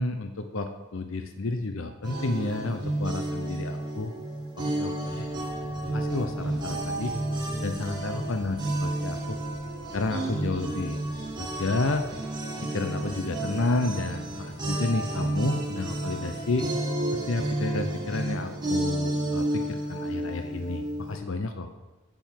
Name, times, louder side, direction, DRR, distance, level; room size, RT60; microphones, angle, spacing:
voice 1, 0.0-4.1 4.6-5.3 5.9-7.1 7.6-9.4 9.9-11.0 11.4-12.0 12.6-16.7 17.3-21.7, left 2 dB, 70° left, 7 dB, 0.7 m, -31 dB
sound 1, 2.0-21.2, right 1 dB, 20° right, 1.9 m, -31 dB
sound 2, 3.6-12.1, right 1 dB, 20° left, 1.7 m, -49 dB
8.0 x 7.2 x 7.6 m, 1.2 s
head